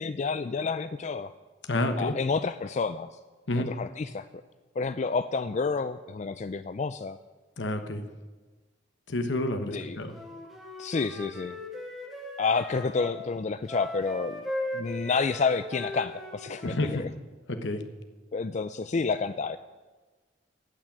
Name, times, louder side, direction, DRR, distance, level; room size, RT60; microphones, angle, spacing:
voice 1, 0.0-1.3 2.0-3.2 3.6-4.3 4.8-7.2 9.6-10.0 10.8-11.6 12.4-14.5 14.7-17.1 18.3-19.6, left 4 dB, 40° left, 12 dB, 0.4 m, -29 dB
voice 2, 1.7-2.1 3.5-3.7 7.6-8.0 9.1-10.1 16.6-17.1 17.5-17.8, left 1 dB, 85° left, 7 dB, 1.2 m, -29 dB
Wind instrument woodwind instrument, 10.1-13.2 13.6-16.9, left 2 dB, ahead, 2.2 m, -38 dB
16.0 x 6.1 x 10.0 m, 1.3 s
head